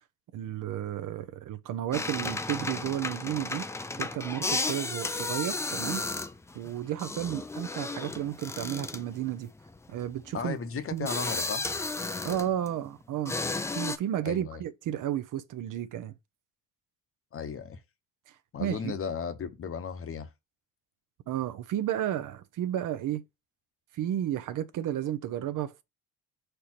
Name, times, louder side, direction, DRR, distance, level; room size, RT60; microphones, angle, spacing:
voice 1, 0.3-3.7 4.0-6.0 6.5-9.5 9.9-10.6 10.9-11.1 12.2-13.4 13.7-16.1 18.3-19.0 21.3-23.2 23.9-25.8, right 11 dB, 60° right, 0.7 m, -32 dB
sound 1, 1.9-12.8 13.3-14.0, left 3 dB, 10° left, 0.3 m, -34 dB
voice 2, 10.3-11.7 14.2-14.6 17.3-17.8 18.5-20.3, left 6 dB, 40° left, 0.9 m, -35 dB
5.1 x 4.5 x 4.2 m
cardioid pair, 130°, 36 cm